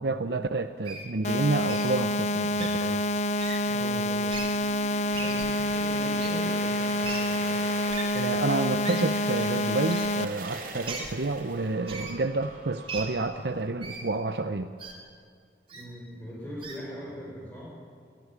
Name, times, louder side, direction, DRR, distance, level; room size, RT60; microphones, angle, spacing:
voice 1, 0.0-3.0 8.1-14.7, right 3 dB, 70° right, 8 dB, 0.7 m, -29 dB
Wild animals, 0.8-1.0 1.7-1.9 2.6-2.7 3.4-3.6 4.3-4.5 5.1-5.5 6.2-6.3 7.0-7.2 7.9-8.0 8.8-9.0 9.9-10.1 10.9-11.1 11.9-12.1 12.9-13.0 13.8-14.0 14.8-14.9 15.7-15.8 16.6-16.8, right 4 dB, 30° right, 3.2 m, -37 dB
sound 1, 1.2-10.2, left 1 dB, 40° left, 0.6 m, -27 dB
voice 2, 3.7-4.2 5.1-7.6 15.7-17.8, equal, 10° left, -6 dB, 4.8 m, -40 dB
sound 2, 3.9-13.7, right 3 dB, 50° right, 2.8 m, -43 dB
22.0 x 13.5 x 9.8 m, 2.2 s
head